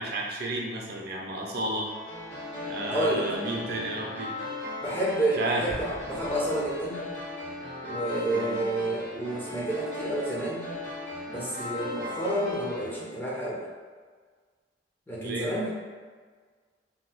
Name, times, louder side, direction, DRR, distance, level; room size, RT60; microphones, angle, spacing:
voice 1, 0.0-1.9 2.7-4.3 5.3-5.7 8.3-8.6 15.2-15.5, right 2 dB, 60° right, -2 dB, 0.5 m, -32 dB
sound 1, 1.9-12.9, left 2 dB, 70° left, 1.4 m, -37 dB
voice 2, 2.9-3.3 4.8-7.0 7.8-10.7 11.3-13.6 15.1-15.7, right 1 dB, 10° left, -6 dB, 0.6 m, -30 dB
Explosion, 5.7-7.5, equal, 50° left, 1.5 m, -45 dB
2.8 x 2.1 x 4.0 m, 1.5 s
head